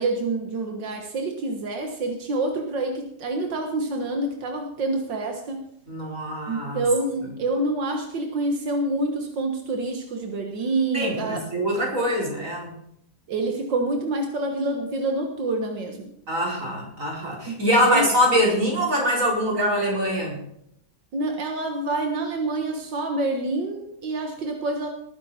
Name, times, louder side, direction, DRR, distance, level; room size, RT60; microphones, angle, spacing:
voice 1, 0.0-5.6 6.5-11.4 13.3-16.1 17.5-17.6 17.8-18.1 21.1-24.9, right 2 dB, 90° right, 3 dB, 2.2 m, -27 dB
voice 2, 5.9-6.8 10.9-12.7 16.3-20.4, equal, 45° right, -2 dB, 5.1 m, -23 dB
19.0 x 9.9 x 4.4 m, 0.72 s
omnidirectional pair, 1.9 m